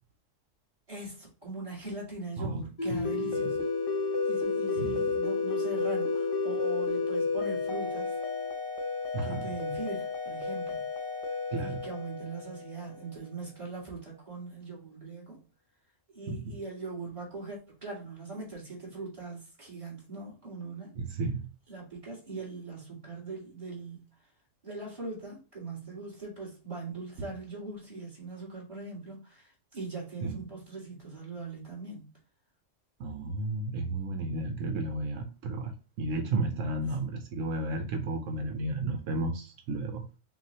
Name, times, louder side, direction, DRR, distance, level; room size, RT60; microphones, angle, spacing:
voice 1, 0.9-3.6 4.2-8.1 9.2-10.9 11.6-15.4 16.1-21.0 21.7-24.1 24.6-32.1, right 3 dB, 25° right, 2.1 m, -41 dB
voice 2, 2.4-3.1 3.4-3.5 4.8-5.1 9.1-9.5 11.5-11.8 16.3-16.6 21.0-21.5 30.2-30.4 33.0-40.0, right 2 dB, 80° right, 1.0 m, -33 dB
sound 1, 2.8-13.1, left 4 dB, 35° left, 0.7 m, -31 dB
5.9 x 2.4 x 2.8 m
omnidirectional pair, 1.3 m